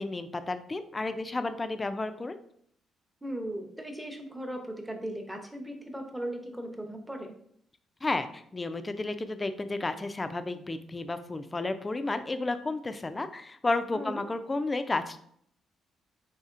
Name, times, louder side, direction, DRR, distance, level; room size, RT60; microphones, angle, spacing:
voice 1, 0.0-2.4 8.0-15.2, left 2 dB, 25° left, 10 dB, 0.4 m, -32 dB
voice 2, 3.2-7.3 13.9-14.2, right 1 dB, 10° right, 3 dB, 0.7 m, -37 dB
4.1 x 3.6 x 2.5 m, 0.66 s
cardioid pair, 90°, 0 cm